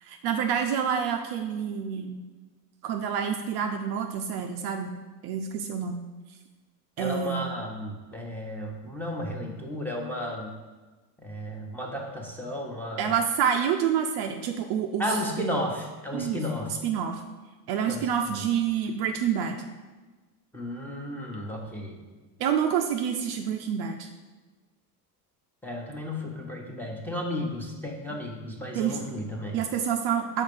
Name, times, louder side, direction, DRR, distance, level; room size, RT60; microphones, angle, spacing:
voice 1, 0.0-2.2 2.8-4.9 5.2-6.0 7.0-7.5 13.0-15.6 16.1-16.4 16.7-17.2 17.7-19.6 22.4-24.1 28.7-29.0 29.5-30.4, right 8 dB, 50° right, 4 dB, 0.6 m, -28 dB
voice 2, 7.0-10.5 11.2-13.1 15.0-16.7 17.9-18.1 20.5-22.0 25.6-29.6, left 1 dB, 5° left, -1 dB, 1.1 m, -33 dB
5.6 x 4.4 x 5.3 m, 1.2 s
supercardioid pair, 105°, 50 cm